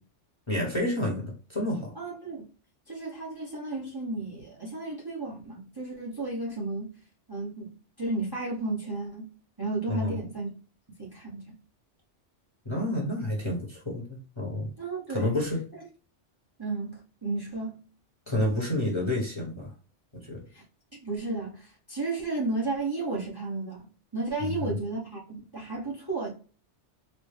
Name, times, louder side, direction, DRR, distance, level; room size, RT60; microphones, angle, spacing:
voice 1, 0.5-1.9 9.9-10.2 12.6-14.7 15.1-15.6 18.3-19.7 20.2-20.4 24.4-24.7, left 1 dB, 25° left, 1.0 m, -29 dB
voice 2, 2.0-2.5 2.9-6.9 7.3-7.7 8.0-9.3 9.6-10.5 11.0-11.5 14.8-15.3 16.6-16.9 17.2-17.8 20.5-20.6 20.9-23.9 24.1-26.3, right 3 dB, 20° right, 0.9 m, -33 dB
4.1 x 2.1 x 3.2 m
omnidirectional pair, 1.2 m